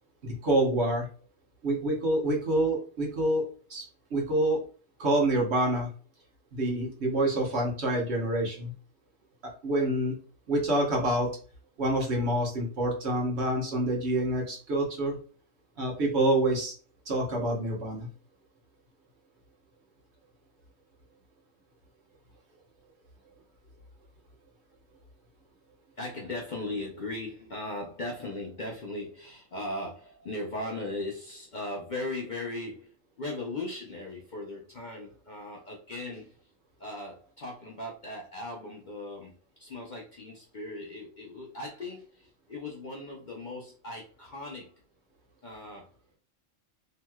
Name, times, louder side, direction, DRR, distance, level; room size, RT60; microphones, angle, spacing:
voice 1, 0.2-1.1 1.6-3.4 3.7-3.8 4.1-4.6 5.0-5.9 6.5-8.7 9.6-10.1 10.5-11.3 11.8-15.2 15.8-16.7 17.1-18.1, right 1 dB, 60° right, 1.2 m, -27 dB
voice 2, 26.0-36.4 36.8-39.3 39.6-44.7 45.4-45.9, left 2 dB, 55° left, 0.5 m, -38 dB
3.0 x 2.8 x 2.2 m
omnidirectional pair, 1.3 m